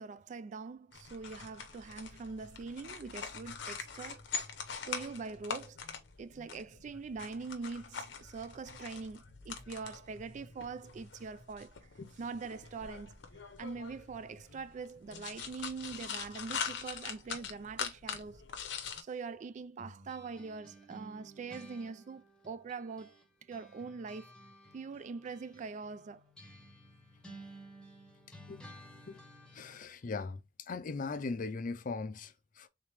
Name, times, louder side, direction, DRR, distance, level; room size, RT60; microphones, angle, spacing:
voice 1, 0.0-4.2 4.9-5.8 6.2-11.8 12.2-13.2 13.6-18.4 19.0-23.2 23.5-24.3 24.7-26.2, right 4 dB, 40° right, 0.3 m, -43 dB
sound 1, 0.9-19.0, left 6 dB, 75° left, 0.8 m, -43 dB
sound 2, 19.8-23.2 23.5-29.9, right 1 dB, 5° left, 0.9 m, -54 dB
voice 2, 29.5-30.4 30.7-32.7, left 4 dB, 45° left, 0.5 m, -39 dB
3.6 x 3.3 x 3.4 m
head